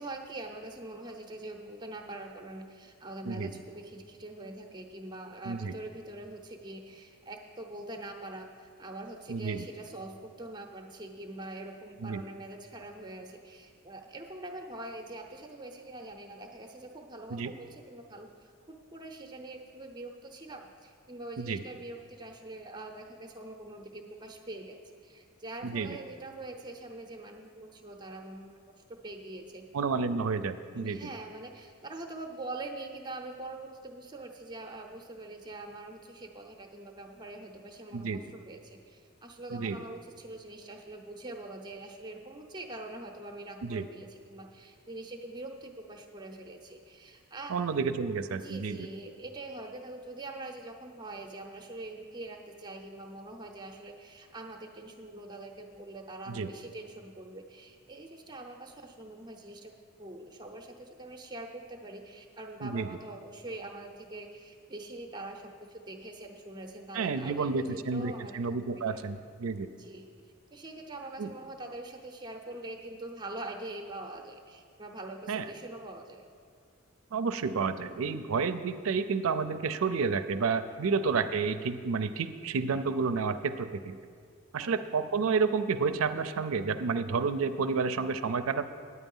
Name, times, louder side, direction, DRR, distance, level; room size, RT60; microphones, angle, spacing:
voice 1, 0.0-29.6 30.8-47.5 48.3-59.7 60.0-68.4 68.7-69.0 69.8-76.3 80.7-80.8 84.6-84.9, right 2 dB, 20° right, 2 dB, 0.6 m, -44 dB
voice 2, 9.3-9.7 12.0-12.2 17.3-17.5 21.4-21.6 25.6-26.0 29.7-31.1 37.9-38.2 39.5-39.8 43.6-43.9 47.5-48.9 56.3-56.5 62.6-62.9 66.9-69.8 71.2-71.3 75.3-75.4 77.1-84.0 84.5-88.7, right 5 dB, 70° right, 10 dB, 0.5 m, -30 dB
9.7 x 9.0 x 5.4 m, 2.1 s
head